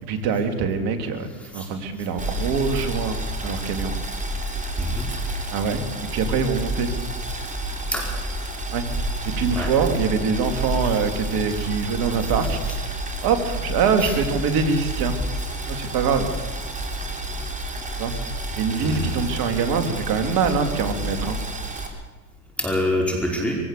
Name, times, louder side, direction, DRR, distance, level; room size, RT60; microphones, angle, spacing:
voice 1, 0.0-1.3 1.5-4.0 5.5-5.8 6.1-6.9 8.7-8.8 9.4-12.6 13.2-15.2 15.7-16.3 18.0-18.1 18.5-21.4, right 5 dB, 55° right, 7 dB, 3.1 m, -24 dB
Boiling, 2.2-21.9, right 1 dB, 15° right, 4.0 m, -29 dB
voice 2, 4.8-5.4 7.9-8.1 9.5-9.7 11.5-11.6 14.0-14.2 18.8-19.2 22.6-23.6, left 1 dB, 5° left, -1 dB, 5.0 m, -26 dB
22.5 x 17.0 x 6.8 m, 1.4 s
hypercardioid pair, 95°, 43 cm